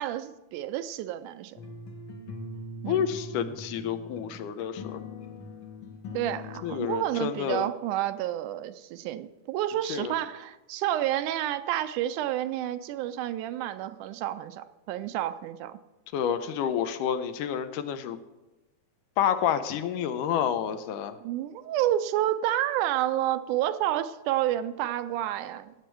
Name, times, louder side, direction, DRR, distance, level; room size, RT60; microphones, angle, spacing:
voice 1, 0.0-1.6 2.8-3.1 6.1-15.8 21.2-25.7, right 13 dB, 80° right, 12 dB, 2.0 m, -30 dB
sound 1, 1.6-7.0, left 2 dB, 60° left, 1.3 m, -41 dB
voice 2, 2.9-5.0 6.6-7.7 9.9-10.1 16.1-18.2 19.2-21.2, left 9 dB, 90° left, 10 dB, 2.3 m, -29 dB
16.5 x 8.1 x 4.6 m, 1.0 s
omnidirectional pair, 3.7 m